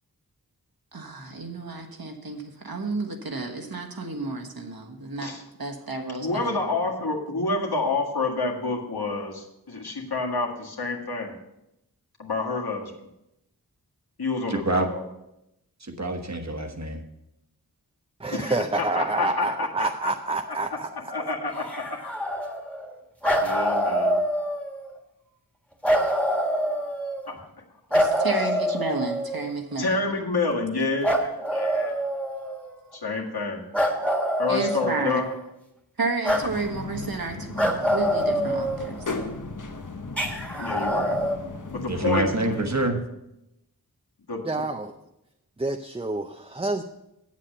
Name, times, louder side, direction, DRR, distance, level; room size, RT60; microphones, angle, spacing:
voice 1, 0.9-5.3 5.6-6.7 27.9-29.9 30.6-30.7 34.5-35.2 36.0-39.0, right 3 dB, 70° right, 3 dB, 1.4 m, -31 dB
voice 2, 6.2-11.4 12.2-13.1 14.2-15.1 18.3-20.1 20.5-22.0 23.4-24.2 27.3-27.5 29.8-32.0 32.9-33.6 34.4-35.3 40.6-41.2 41.7-42.6 44.3-44.7, left 3 dB, 75° left, -1 dB, 1.9 m, -29 dB
voice 3, 14.5-14.9 15.8-17.0 41.4-41.5 41.9-43.0, right 2 dB, 45° right, 5 dB, 1.3 m, -26 dB
voice 4, 18.2-20.9 44.5-44.9 45.6-46.8, right 3 dB, 15° right, 5 dB, 0.5 m, -28 dB
sound 1, 21.5-22.9 23.2-24.9 25.8-27.3 27.9-29.5 31.0-32.7 33.7-35.4 36.2-36.5 37.6-39.2 40.2-41.4, equal, 5° left, 1.6 m, -25 dB
sound 2, 36.3-42.9, left 3 dB, 55° left, 1.0 m, -36 dB
8.4 x 7.5 x 6.5 m, 0.87 s
wide cardioid pair, 50°, 38 cm